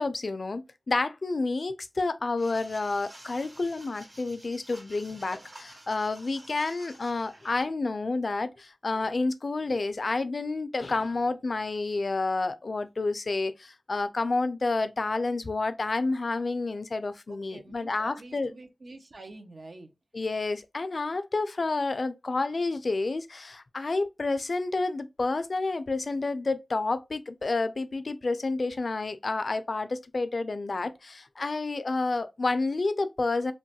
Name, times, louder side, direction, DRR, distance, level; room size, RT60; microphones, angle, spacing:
voice 1, 0.0-18.5 20.1-33.5, left 3 dB, 70° left, 0.3 m, -29 dB
sound 1, 2.4-7.6, right 1 dB, 50° right, 1.8 m, -50 dB
voice 2, 17.3-19.9, right 2 dB, 75° right, 0.5 m, -46 dB
3.0 x 2.1 x 2.7 m
cardioid pair, 40°, 0 cm